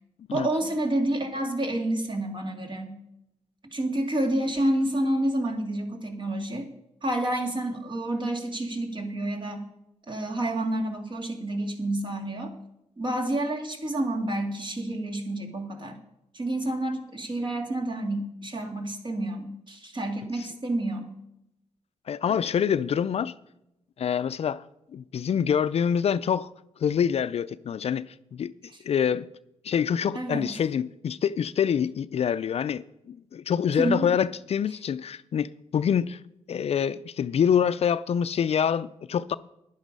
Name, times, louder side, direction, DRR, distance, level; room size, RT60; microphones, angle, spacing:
voice 1, 0.3-3.0 3.7-6.7 7.0-9.6 10.1-12.5 13.0-16.0 16.3-21.1 22.3-22.4 30.1-30.5 33.8-34.1, right 1 dB, 40° right, 2.4 m, -29 dB
voice 2, 22.1-23.3 24.0-24.6 24.9-26.5 26.8-28.5 28.8-29.3 29.6-36.2 36.5-39.4, left 8 dB, 55° left, 0.4 m, -26 dB
10.5 x 10.0 x 5.4 m
cardioid pair, 70°, 12 cm